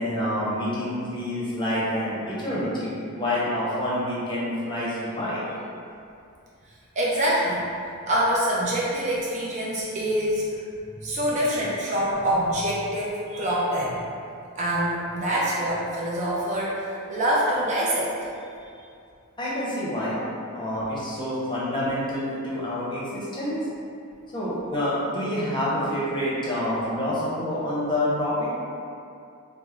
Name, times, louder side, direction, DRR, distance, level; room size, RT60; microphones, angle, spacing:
voice 1, 0.0-5.4 18.6-18.8 19.4-20.2 20.5-23.6 24.3-28.5, left 1 dB, 20° left, -8 dB, 0.7 m, -27 dB
voice 2, 7.0-7.6 8.1-10.4 11.0-14.0 14.6-18.3, equal, 35° right, -6 dB, 0.5 m, -25 dB
3.4 x 2.0 x 3.5 m, 2.5 s
head